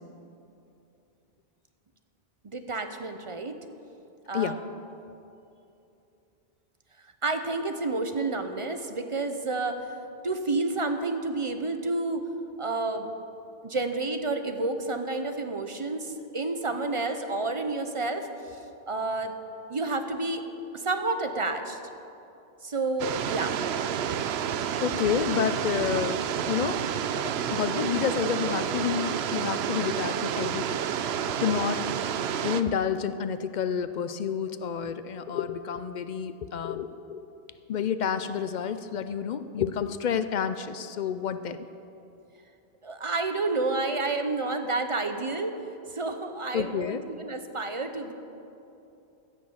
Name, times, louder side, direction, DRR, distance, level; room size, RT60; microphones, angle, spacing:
voice 1, 2.4-3.6 4.3-4.6 7.2-9.8 10.2-12.2 12.6-13.1 13.6-18.6 18.9-19.3 19.7-20.4 20.7-21.8 22.6-23.6 42.8-45.5 45.9-48.1, right 3 dB, 35° right, 7 dB, 0.6 m, -30 dB
sound 1, 23.0-32.6, right 8 dB, 75° right, 0.8 m, -29 dB
voice 2, 24.8-26.8 27.1-30.8 31.4-31.9 32.4-37.3 37.7-41.7 46.5-47.0, left 7 dB, 55° left, 12 dB, 0.5 m, -29 dB
15.0 x 6.4 x 7.2 m, 2.8 s
omnidirectional pair, 1.1 m